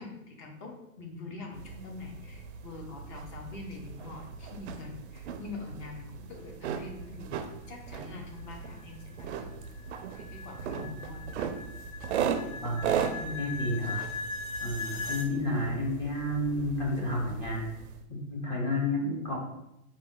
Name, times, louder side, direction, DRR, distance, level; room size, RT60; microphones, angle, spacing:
voice 1, 0.0-9.5 10.2-11.2, left 3 dB, 35° left, 1 dB, 0.9 m, -44 dB
sound 1, 1.5-18.0, right 7 dB, 55° right, 0.5 m, -38 dB
sound 2, 8.1-15.3, left 4 dB, 70° left, 0.8 m, -40 dB
voice 2, 13.2-14.0 14.6-17.7 18.1-19.4, left 1 dB, 10° left, -2 dB, 0.5 m, -31 dB
5.0 x 2.7 x 3.6 m, 0.87 s
hypercardioid pair, 150°, 42 cm